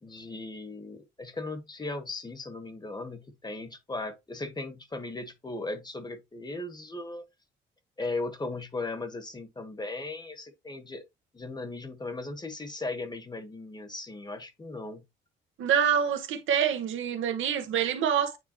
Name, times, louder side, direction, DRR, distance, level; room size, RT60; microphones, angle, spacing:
voice 1, 0.0-7.2 8.0-11.0 11.3-15.0, left 2 dB, 20° left, 1.5 m, -37 dB
voice 2, 15.6-18.4, right 8 dB, 80° right, 1.3 m, -26 dB
9.4 x 3.4 x 3.0 m
cardioid pair, 90°, 20 cm